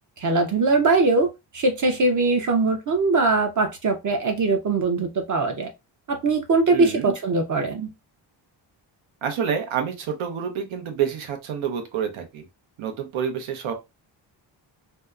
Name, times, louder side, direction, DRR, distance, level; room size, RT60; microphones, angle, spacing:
voice 1, 0.2-5.7 6.1-7.9, right 3 dB, 40° right, 0.5 m, -21 dB
voice 2, 6.7-7.1 9.2-12.5 12.8-13.7, right 8 dB, 90° right, 0.7 m, -28 dB
2.7 x 2.1 x 2.3 m
cardioid pair, 100°, 46 cm